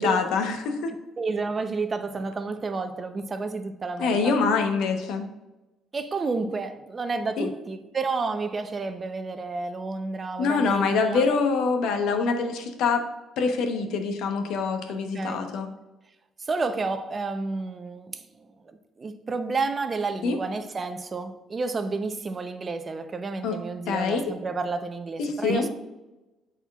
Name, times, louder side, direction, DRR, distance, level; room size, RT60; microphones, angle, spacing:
voice 1, 0.0-1.0 4.0-5.3 7.4-7.5 10.4-13.1 13.4-15.7 20.2-20.4 23.4-23.6 23.9-24.2 25.2-25.7, left 4 dB, 80° left, 1.0 m, -25 dB
voice 2, 1.2-4.3 5.9-11.2 14.9-15.5 16.4-25.7, right 4 dB, 30° right, 0.7 m, -30 dB
12.0 x 4.3 x 2.4 m
cardioid pair, 105°, 0 cm